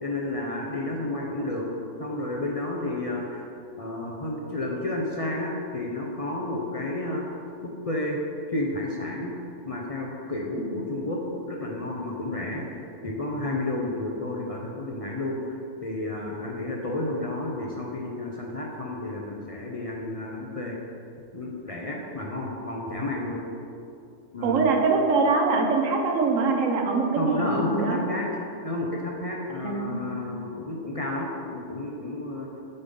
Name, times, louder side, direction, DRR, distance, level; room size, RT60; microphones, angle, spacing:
voice 1, 0.0-1.7 2.0-3.5 3.8-7.2 7.6-8.2 8.5-9.3 9.6-11.2 11.5-12.6 13.0-20.8 21.3-23.4 24.3-24.8 27.2-32.6, left 2 dB, 40° left, -2 dB, 0.6 m, -31 dB
voice 2, 24.4-28.0 29.6-30.2, right 4 dB, 90° right, 2 dB, 1.2 m, -23 dB
7.8 x 3.7 x 5.3 m, 2.6 s
omnidirectional pair, 1.3 m